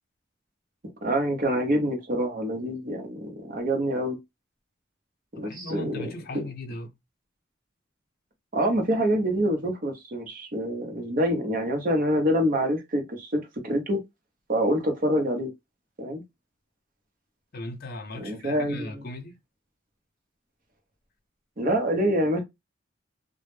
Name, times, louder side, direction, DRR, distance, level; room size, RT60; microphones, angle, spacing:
voice 1, 1.0-4.2 5.3-6.4 8.5-14.0 14.5-15.5 16.0-16.2 18.2-19.0 21.6-22.4, equal, 45° right, 0.7 m, -26 dB
voice 2, 5.3-6.9 17.5-19.4, left 1 dB, 50° left, 0.6 m, -37 dB
2.1 x 2.0 x 3.0 m
head